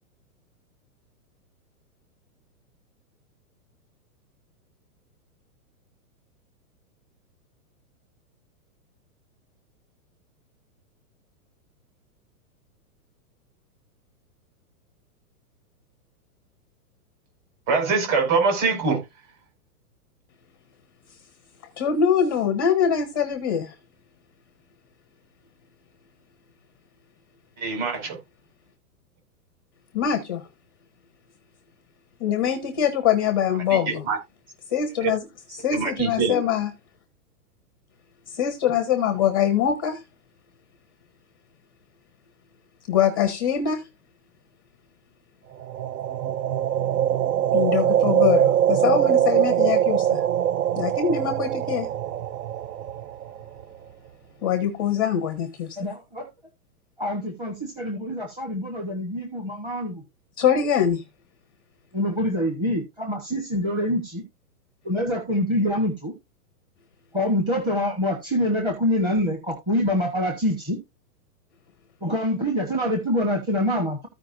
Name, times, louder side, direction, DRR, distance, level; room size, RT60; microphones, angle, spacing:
voice 1, 17.7-19.0 27.6-28.2 33.7-34.2 35.0-35.1 35.7-36.4, right 4 dB, 30° right, 4.7 m, -23 dB
voice 2, 21.8-23.7 29.9-30.5 32.2-34.1 34.7-35.2 35.6-36.7 38.3-40.0 42.9-43.9 47.5-50.2 50.7-51.9 54.4-55.8 60.4-61.0, left 8 dB, 15° left, 0.5 m, -23 dB
sound 1, 45.6-53.6, right 10 dB, 75° right, 0.7 m, -23 dB
voice 3, 55.8-56.3 57.0-60.0 61.9-64.2 64.8-66.1 67.1-70.8 72.0-74.1, equal, 10° right, 0.9 m, -25 dB
14.5 x 5.1 x 2.5 m
hypercardioid pair, 165°, 46 cm